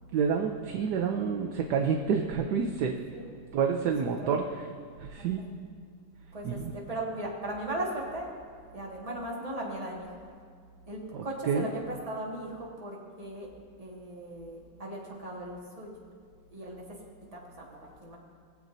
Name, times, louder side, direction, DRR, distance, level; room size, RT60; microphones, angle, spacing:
voice 1, 0.1-2.9 3.5-4.7 5.0-5.4 6.4-6.7 11.1-11.7, right 6 dB, 70° right, 3 dB, 1.1 m, -28 dB
voice 2, 4.2-4.5 5.2-5.5 6.3-8.3 8.7-10.1 10.9-13.5 13.8-15.9 16.5-16.8 17.3-18.2, right 1 dB, 20° right, -4 dB, 1.7 m, -38 dB
21.0 x 7.8 x 2.7 m, 2.1 s
omnidirectional pair, 2.1 m